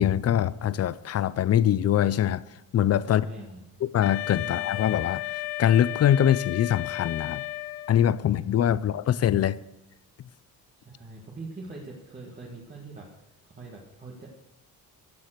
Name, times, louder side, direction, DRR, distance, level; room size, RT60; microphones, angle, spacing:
voice 1, 0.0-2.4 2.7-3.3 3.8-5.2 5.6-7.4 7.9-9.6, left 10 dB, 45° left, 0.5 m, -23 dB
voice 2, 3.0-3.8 4.4-4.6 8.7-8.8 10.8-14.4, right 3 dB, 25° right, 1.9 m, -43 dB
Wind instrument woodwind instrument, 4.0-8.2, left 18 dB, 85° left, 0.7 m, -34 dB
15.0 x 7.6 x 6.6 m
cardioid pair, 160°, 37 cm